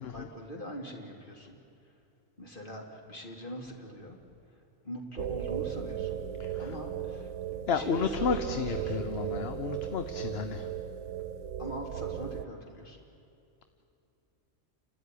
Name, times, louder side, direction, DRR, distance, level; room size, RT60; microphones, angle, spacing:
voice 1, 0.1-1.6 1.8-1.9 2.4-4.2 4.8-6.2 6.6-9.1 11.6-13.0, equal, 45° left, 0 dB, 3.1 m, -43 dB
sound 1, 5.2-12.4, right 9 dB, 80° right, 1.1 m, -36 dB
voice 2, 7.7-10.7, left 6 dB, 60° left, 9 dB, 1.0 m, -31 dB
30.0 x 13.0 x 10.0 m, 2.7 s
omnidirectional pair, 1.3 m